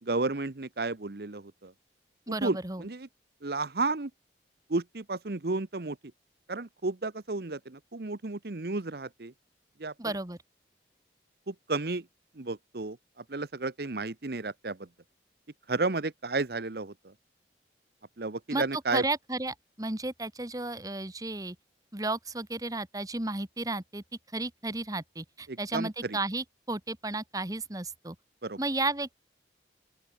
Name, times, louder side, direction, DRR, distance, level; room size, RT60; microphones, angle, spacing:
voice 1, 0.0-1.7 2.3-3.1 3.4-4.1 4.7-6.0 6.5-9.3 9.8-10.2 11.5-12.1 12.4-14.9 15.7-17.1 18.2-19.1 25.5-26.2 28.4-28.6, right 3 dB, 60° right, 0.9 m, -32 dB
voice 2, 2.3-2.8 10.0-10.4 18.5-18.6 18.9-21.5 21.9-24.0 24.3-28.1 28.6-29.2, right 2 dB, 20° right, 1.5 m, -33 dB
open air
head